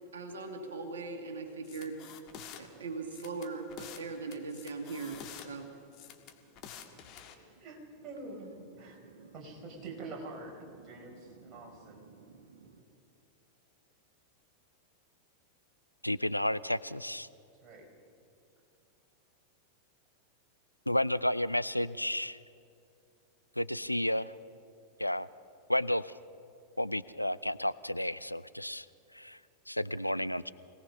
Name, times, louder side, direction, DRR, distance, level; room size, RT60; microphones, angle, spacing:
voice 1, 0.1-2.0 2.6-5.7 9.1-9.3 11.1-12.8, right 4 dB, 65° right, 4 dB, 1.9 m, -41 dB
sound 1, 1.6-2.6 3.1-4.0 4.3-5.5 5.9-7.3, left 9 dB, 40° left, 1.7 m, -48 dB
voice 2, 7.3-9.0 9.3-12.0 17.6-17.9, right 2 dB, 30° right, -1 dB, 5.0 m, -46 dB
voice 3, 16.0-17.3 20.9-22.4 23.6-24.3 25.0-25.3 25.7-26.2 26.8-28.9 29.1-29.4 29.7-30.5, left 1 dB, 90° left, 16 dB, 0.4 m, -31 dB
25.5 x 18.0 x 5.7 m, 2.5 s
figure-of-eight pair, 90°, 0 cm